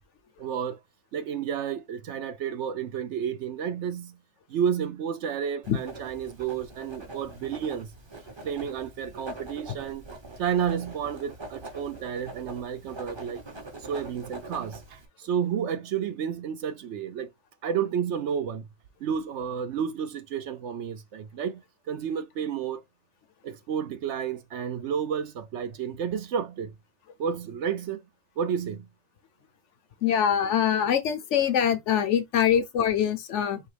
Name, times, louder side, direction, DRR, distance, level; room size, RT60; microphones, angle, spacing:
voice 1, 0.4-0.8 1.1-4.2 4.5-7.9 8.4-13.4 13.9-17.3 17.6-18.6 19.0-22.8 23.4-26.7 27.2-28.0 28.4-28.9, right 8 dB, 65° right, 0.8 m, -31 dB
Writing, 5.6-15.1, right 2 dB, 25° right, 0.8 m, -43 dB
voice 2, 30.0-33.6, left 9 dB, 65° left, 1.0 m, -24 dB
4.6 x 3.0 x 3.2 m
omnidirectional pair, 1.4 m